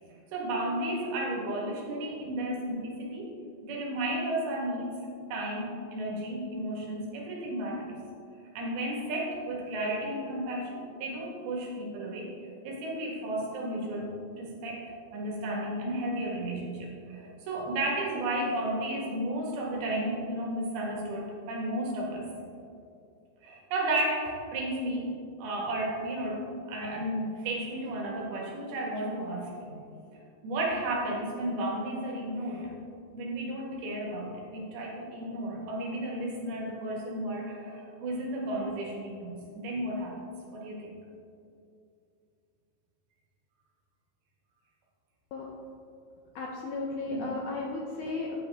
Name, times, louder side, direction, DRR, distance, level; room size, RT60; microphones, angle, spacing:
voice 1, 0.3-3.3 3.6-4.9 5.3-7.8 8.6-14.8 15.1-22.3 23.4-25.1 25.4-29.8 30.1-32.7 33.1-40.2 40.5-40.9 47.1-47.3, right 1 dB, 80° right, -2 dB, 3.3 m, -33 dB
voice 2, 46.4-48.4, left 3 dB, 80° left, -1 dB, 1.8 m, -34 dB
8.4 x 8.3 x 3.4 m, 2.5 s
omnidirectional pair, 4.3 m